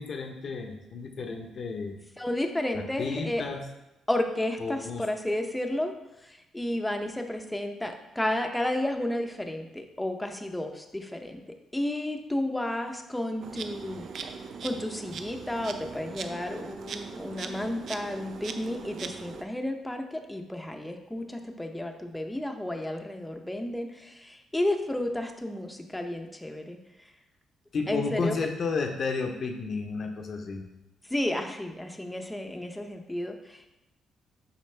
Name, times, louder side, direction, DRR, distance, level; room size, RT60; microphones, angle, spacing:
voice 1, 0.0-2.0 2.7-3.7 4.6-5.1 27.7-30.7, left 4 dB, 50° left, 3 dB, 0.8 m, -32 dB
voice 2, 2.2-3.4 4.1-5.9 6.2-14.1 14.6-27.1 27.9-28.5 31.1-33.7, left 1 dB, 10° left, 5 dB, 0.7 m, -32 dB
Insect, 13.4-19.4, right 5 dB, 60° right, 0.5 m, -40 dB
6.7 x 5.0 x 3.3 m, 0.93 s
cardioid pair, 90°, 0 cm